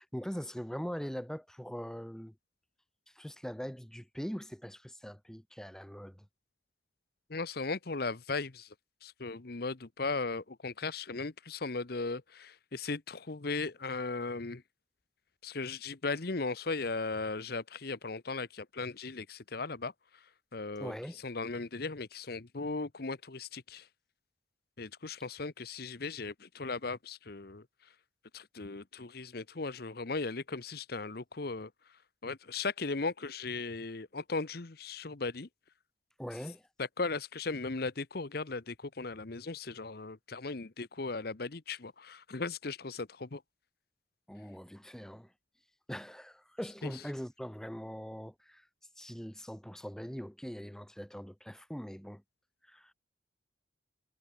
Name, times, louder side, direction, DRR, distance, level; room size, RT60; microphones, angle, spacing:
voice 1, 0.0-2.3 3.1-6.3 20.8-21.2 36.2-36.7 44.3-45.3 45.9-48.7 49.0-52.2 52.6-52.9, equal, 5° left, 0.9 m, -42 dB
voice 2, 7.3-8.7 9.0-14.6 15.4-20.2 20.5-20.9 21.2-23.9 24.8-27.7 28.3-31.7 32.2-35.5 36.8-43.4 46.8-46.9, left 3 dB, 55° left, 0.9 m, -37 dB
head